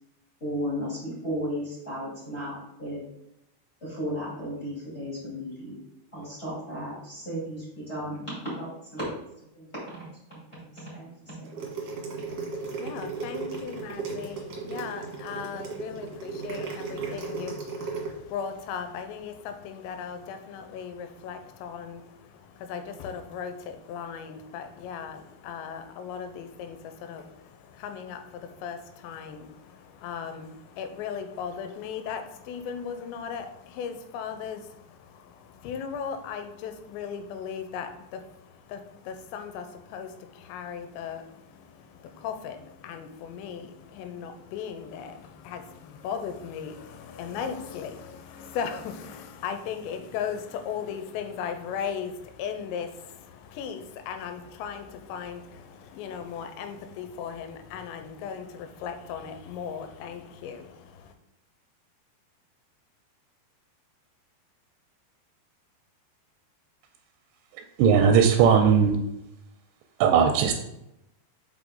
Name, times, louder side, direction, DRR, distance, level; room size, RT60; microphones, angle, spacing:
voice 1, 0.4-3.0 3.8-5.8 6.1-9.2 9.5-11.7, equal, 20° left, -7 dB, 1.9 m, -35 dB
sound 1, 11.4-18.1, right 4 dB, 55° right, 1.9 m, -35 dB
voice 2, 12.3-61.1, left 7 dB, 90° left, 8 dB, 2.9 m, -37 dB
voice 3, 67.8-69.0 70.0-70.5, right 7 dB, 85° right, 5 dB, 2.7 m, -18 dB
6.0 x 5.4 x 3.8 m, 0.84 s
omnidirectional pair, 5.0 m